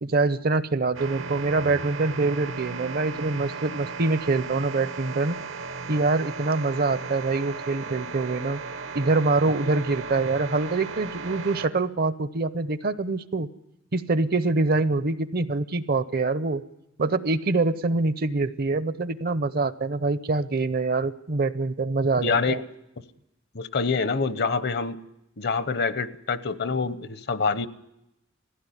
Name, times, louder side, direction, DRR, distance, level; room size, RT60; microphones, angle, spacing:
voice 1, 0.0-5.4 5.9-8.6 8.9-13.5 13.9-16.6 17.0-22.6, right 3 dB, 50° right, 14 dB, 0.7 m, -25 dB
sound 1, 0.9-11.7, right 4 dB, 80° right, 1.2 m, -36 dB
voice 2, 22.2-22.6 23.5-25.0 25.4-27.7, left 4 dB, 55° left, 14 dB, 0.8 m, -26 dB
19.5 x 16.0 x 9.9 m, 0.87 s
head